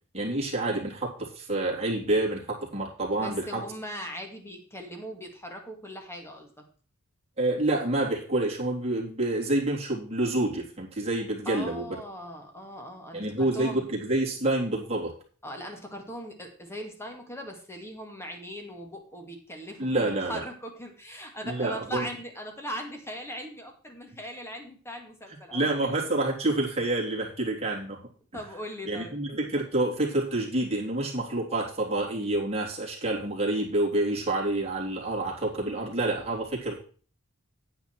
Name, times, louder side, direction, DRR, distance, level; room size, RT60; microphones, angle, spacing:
voice 1, 0.1-3.6 7.4-11.9 13.1-15.2 19.8-20.4 21.4-22.1 25.5-28.1 28.8-36.8, right 2 dB, 30° right, -4 dB, 3.4 m, -28 dB
voice 2, 3.2-6.6 11.5-13.9 15.4-26.0 28.3-29.2, equal, 10° left, 3 dB, 2.2 m, -39 dB
9.5 x 9.0 x 4.5 m, 0.40 s
head